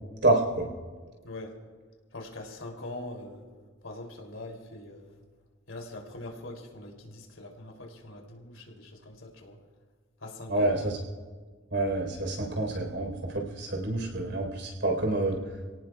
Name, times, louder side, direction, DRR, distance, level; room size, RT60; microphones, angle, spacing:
voice 1, 0.2-0.7 10.5-11.0 11.7-15.4, right 2 dB, 65° right, 1 dB, 4.2 m, -27 dB
voice 2, 1.2-1.6 2.1-3.5 3.8-5.2 5.7-9.6 10.2-10.7, left 2 dB, 85° left, 1 dB, 3.1 m, -42 dB
29.0 x 17.5 x 2.4 m, 1.5 s
head